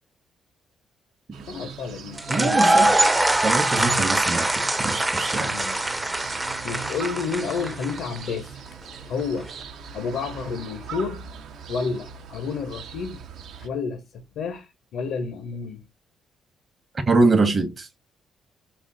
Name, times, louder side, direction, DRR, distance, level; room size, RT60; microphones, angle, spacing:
sound 1, 1.3-13.7, right 6 dB, 80° right, 0.5 m, -41 dB
voice 1, 1.5-3.0 5.5-5.9 6.6-8.6 9.1-9.5 9.9-11.2 11.7-13.2 13.6-14.0 14.4-15.9, left 5 dB, 80° left, 0.6 m, -30 dB
sound 2, 2.2-8.2, right 2 dB, 15° right, 0.4 m, -23 dB
voice 2, 2.3-2.9 3.4-5.5 17.1-17.9, right 3 dB, 35° right, 0.8 m, -23 dB
4.2 x 2.1 x 3.7 m
cardioid pair, 90°, 0 cm